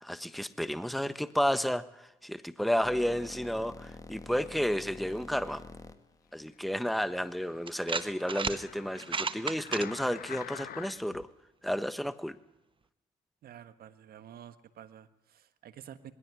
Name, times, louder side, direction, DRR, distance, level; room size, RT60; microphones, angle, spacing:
voice 1, 0.0-5.6 6.3-11.3 11.6-12.3, equal, ahead, 13 dB, 1.3 m, -32 dB
sound 1, 2.8-7.4, left 3 dB, 20° left, 2.0 m, -47 dB
sound 2, 6.7-11.2 11.8-11.9, left 10 dB, 65° left, 1.1 m, -48 dB
sound 3, 6.9-7.0 7.7-8.6 9.0-9.9, right 4 dB, 30° right, 1.3 m, -33 dB
voice 2, 13.4-16.1, right 10 dB, 70° right, 12 dB, 1.6 m, -50 dB
20.5 x 16.5 x 9.6 m, 0.90 s
supercardioid pair, 60°, 16 cm